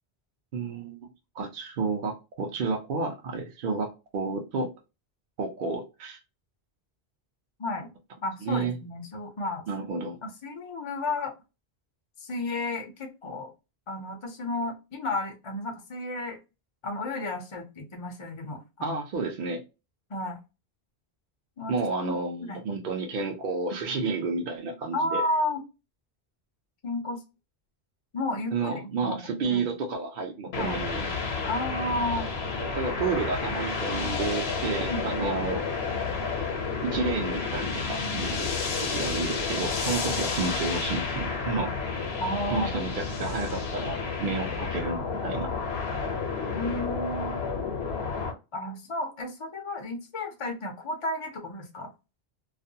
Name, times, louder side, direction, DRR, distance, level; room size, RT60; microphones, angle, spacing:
voice 1, 0.5-1.1 1.4-4.7 5.4-6.2 8.4-8.8 9.7-10.2 18.8-19.6 21.7-25.2 28.5-31.0 32.6-35.6 36.8-38.5 38.8-41.7 42.5-45.5, right 4 dB, 60° right, 0.7 m, -31 dB
voice 2, 8.2-9.7 10.2-11.3 12.2-13.5 13.9-16.4 16.8-19.0 20.1-20.4 21.6-21.7 22.0-22.6 24.9-25.6 26.8-27.2 28.1-29.6 30.6-30.8 31.4-32.3 34.9-35.1 42.2-42.7 46.5-47.4 48.5-51.9, left 1 dB, 40° left, 0.5 m, -32 dB
sound 1, 30.5-48.3, left 4 dB, 80° left, 0.9 m, -31 dB
2.4 x 2.2 x 2.6 m
omnidirectional pair, 1.0 m